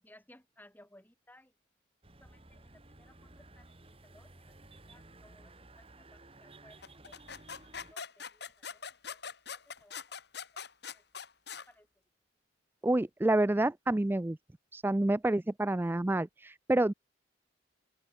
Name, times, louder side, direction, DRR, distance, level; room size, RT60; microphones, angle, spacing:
voice 1, 0.0-1.5 2.2-3.7 4.0-4.5 4.9-7.3 7.6-10.0 10.9-11.0 11.7-11.9, left 1 dB, 10° left, 2.9 m, -61 dB
sound 1, 2.0-7.9, right 2 dB, 30° right, 2.0 m, -55 dB
sound 2, 6.8-11.7, left 6 dB, 55° left, 2.8 m, -43 dB
voice 2, 12.8-14.4 14.7-16.9, right 1 dB, 10° right, 0.3 m, -28 dB
head